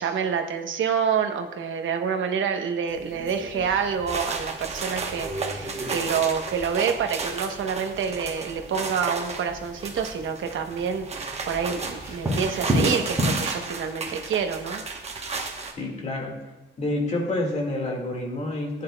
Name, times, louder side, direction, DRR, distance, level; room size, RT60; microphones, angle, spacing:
voice 1, 0.0-14.8, right 6 dB, 75° right, 5 dB, 0.9 m, -27 dB
sound 1, 2.9-13.3, equal, 15° right, 2.9 m, -34 dB
sound 2, 4.1-15.7, right 4 dB, 35° right, 0.9 m, -33 dB
voice 2, 15.8-16.4 16.8-18.8, left 2 dB, 35° left, 0 dB, 1.8 m, -28 dB
14.5 x 9.4 x 2.2 m, 1.1 s
wide cardioid pair, 175°, 20 cm